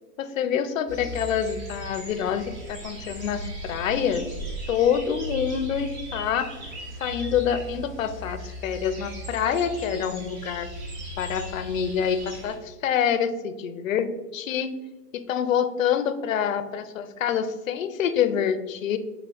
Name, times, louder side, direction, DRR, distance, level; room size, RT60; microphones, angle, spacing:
voice 1, 0.2-4.3 4.7-6.5 7.0-10.7 11.2-14.8 15.1-19.0, left 8 dB, 55° left, 11 dB, 0.5 m, -26 dB
sound 1, 0.9-12.5, right 1 dB, 30° right, 1.0 m, -37 dB
4.6 x 3.8 x 2.9 m, 1.2 s
hypercardioid pair, 145°, 47 cm